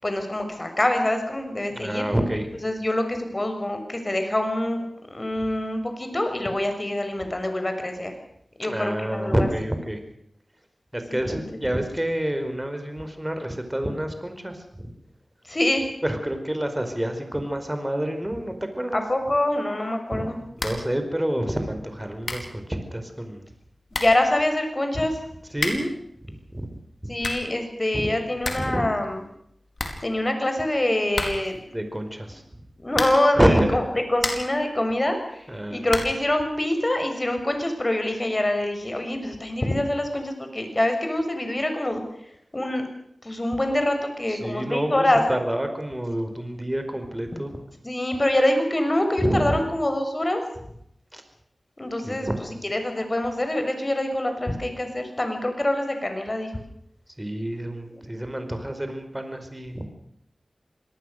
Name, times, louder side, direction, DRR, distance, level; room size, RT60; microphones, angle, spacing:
voice 1, 0.0-2.0 2.6-8.1 8.6-9.5 11.1-11.2 15.5-15.8 19.1-20.4 23.9-25.2 27.1-29.2 30.0-31.6 32.8-33.8 34.1-42.0 42.5-42.9 43.2-45.2 47.8-50.4 51.8-52.3 52.7-56.7, left 1 dB, 35° left, 6 dB, 6.4 m, -25 dB
voice 2, 1.7-2.5 8.6-10.0 10.9-14.9 16.0-19.0 20.1-20.3 20.5-23.4 25.5-25.9 26.2-26.7 27.0-27.1 27.9-28.1 28.5-28.9 31.7-32.6 33.3-33.8 35.5-35.9 44.3-47.6 49.2-49.6 51.1-51.2 52.0-52.6 57.2-59.9, right 1 dB, 15° right, 7 dB, 4.9 m, -28 dB
sound 1, 20.5-20.9 21.2-21.3 21.9-22.0 22.2-22.6 23.5-23.6 23.9-24.3 25.5-26.0 26.9-27.6 27.9-28.0 28.2-28.8 29.0-29.1 29.4-29.5 29.7-30.5 31.1-31.6 32.9-33.4 33.9-34.6 35.9-36.3, left 2 dB, 60° left, 4.5 m, -31 dB
26.0 x 19.0 x 6.7 m, 0.73 s
cardioid pair, 45°, 0 cm